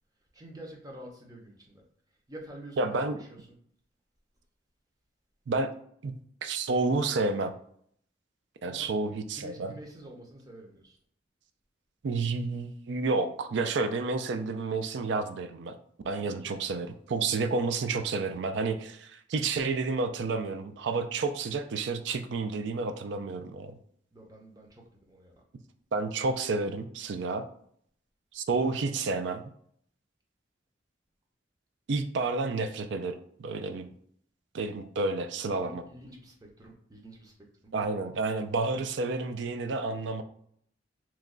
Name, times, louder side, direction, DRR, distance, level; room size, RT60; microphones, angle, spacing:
voice 1, 0.3-1.8 2.3-3.0 3.3-3.4 8.6-8.9 9.3-11.0 16.2-16.5 24.1-25.3 35.5-37.3 37.6-37.7, right 1 dB, 20° right, 0 dB, 0.6 m, -48 dB
voice 2, 2.8-3.2 5.5-5.7 6.0-6.1 6.4-7.5 8.6-9.7 12.0-15.8 16.0-23.7 25.9-27.5 28.3-29.4 31.9-33.9 34.5-35.8 37.7-40.2, right 3 dB, 70° right, 8 dB, 0.4 m, -30 dB
3.0 x 2.2 x 3.7 m, 0.66 s
head